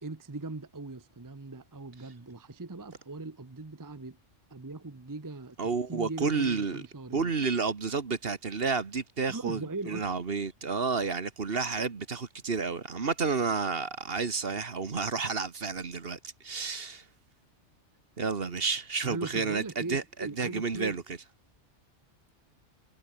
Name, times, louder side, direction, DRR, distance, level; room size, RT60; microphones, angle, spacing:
voice 1, 0.0-4.2 4.5-5.6 5.9-7.3 9.3-10.1 19.0-21.0, right 3 dB, 20° right, 0.9 m, -40 dB
voice 2, 5.6-6.8 7.1-17.0 18.2-21.0, right 4 dB, 55° right, 1.7 m, -31 dB
omnidirectional pair, 1.2 m